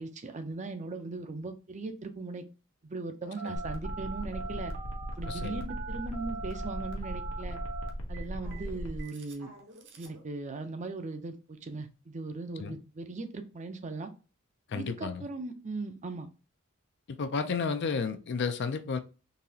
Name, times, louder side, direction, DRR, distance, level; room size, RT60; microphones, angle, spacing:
voice 1, 0.0-2.4 2.8-4.7 5.2-7.6 8.1-9.5 10.0-14.1 14.7-16.3, right 3 dB, 35° right, 0.5 m, -39 dB
Telephone, 3.4-10.2, right 4 dB, 55° right, 0.9 m, -42 dB
sound 1, 3.6-9.0, equal, 70° left, 1.0 m, -39 dB
voice 2, 5.3-5.7 12.6-12.8 14.7-15.2 17.1-19.0, left 5 dB, 55° left, 0.4 m, -32 dB
4.0 x 2.9 x 2.7 m
head